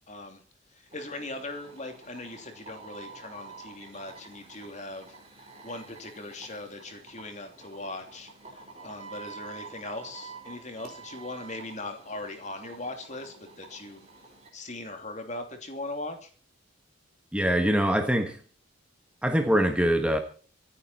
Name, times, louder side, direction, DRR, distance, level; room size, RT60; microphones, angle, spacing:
voice 1, 0.1-0.4 0.7-14.0 14.5-16.3, left 2 dB, 35° left, 5 dB, 2.9 m, -40 dB
sound 1, 0.9-14.5, right 4 dB, 30° right, 4.0 m, -48 dB
voice 2, 17.3-18.4 19.2-20.2, equal, 5° right, 5 dB, 1.4 m, -23 dB
25.5 x 9.5 x 4.4 m, 0.40 s
head